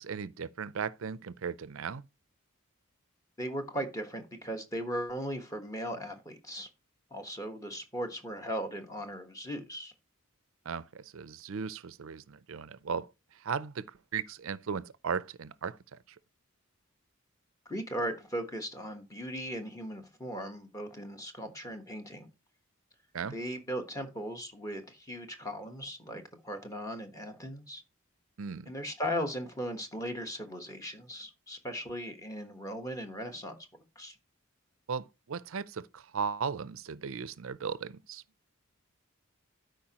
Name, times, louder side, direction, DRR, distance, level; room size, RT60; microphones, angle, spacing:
voice 1, 0.0-2.0 10.7-16.0 23.1-23.4 28.4-28.7 34.9-38.2, right 6 dB, 65° right, 0.5 m, -37 dB
voice 2, 3.4-6.7 7.1-9.9 17.6-22.3 23.3-27.8 28.7-33.6 34.0-34.2, equal, 15° left, 1.2 m, -38 dB
12.5 x 5.1 x 2.9 m
head